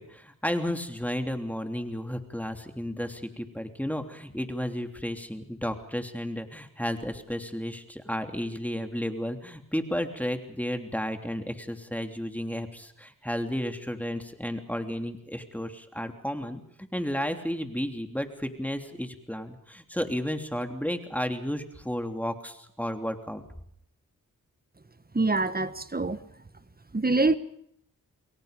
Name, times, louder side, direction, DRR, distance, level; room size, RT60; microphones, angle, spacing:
voice 1, 0.0-23.4, equal, 5° left, 3.1 m, -33 dB
voice 2, 25.1-26.2 26.9-27.4, right 3 dB, 25° right, 1.6 m, -25 dB
29.5 x 22.0 x 5.3 m
cardioid pair, 60°, 33 cm